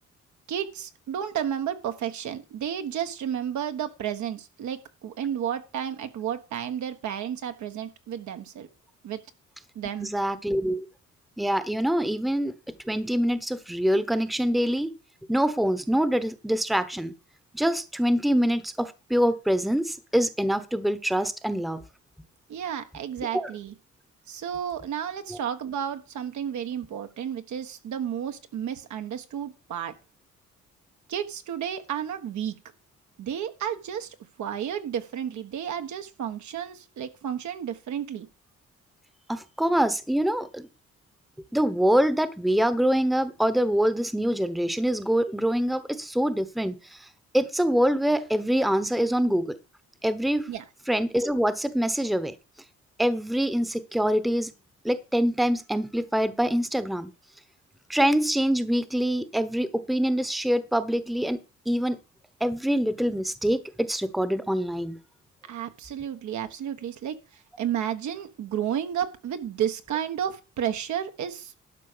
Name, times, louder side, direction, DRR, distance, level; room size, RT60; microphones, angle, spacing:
voice 1, 0.5-8.7 9.0-9.2 9.7-10.1 22.5-23.7 24.3-30.0 31.1-32.5 33.2-38.3 50.5-50.6 65.5-71.5, right 9 dB, 70° right, 1.3 m, -32 dB
voice 2, 10.0-10.9 11.4-12.5 12.8-15.0 15.3-17.1 17.5-21.8 23.2-23.5 25.3-25.4 39.3-40.7 41.5-47.1 47.3-49.6 50.0-50.5 50.9-52.3 53.0-54.5 54.8-57.1 57.9-61.4 61.7-62.0 62.4-65.0, equal, ahead, 1.0 m, -25 dB
12.0 x 5.0 x 6.7 m
cardioid pair, 90°, 30 cm